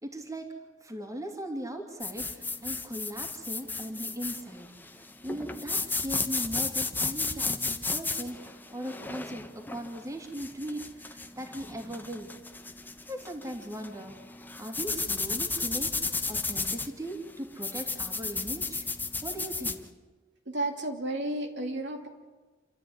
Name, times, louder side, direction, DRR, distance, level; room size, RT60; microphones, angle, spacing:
voice 1, 0.0-0.5 0.8-4.7 4.9-12.3 13.1-14.1 14.6-15.9 16.3-18.9 19.2-19.8, right 1 dB, 15° right, 3 dB, 2.9 m, -39 dB
sound 1, 2.0-19.8, left 3 dB, 10° left, 1.2 m, -34 dB
voice 2, 20.5-22.1, right 1 dB, 65° right, 3 dB, 2.8 m, -32 dB
28.0 x 13.5 x 9.7 m, 1.2 s
head